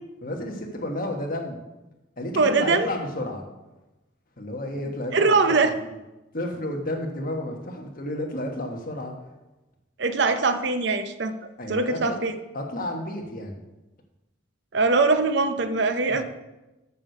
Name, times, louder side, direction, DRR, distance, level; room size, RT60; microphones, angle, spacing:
voice 1, 0.2-1.6 2.2-3.4 4.4-5.9 6.3-9.1 11.6-12.2 12.5-13.5 16.1-16.2, left 1 dB, 45° left, 1 dB, 1.4 m, -32 dB
voice 2, 2.4-2.9 5.1-5.7 10.0-11.3 11.7-12.3 14.7-16.2, right 3 dB, 60° right, 9 dB, 0.6 m, -22 dB
7.3 x 6.6 x 6.6 m, 1.0 s
head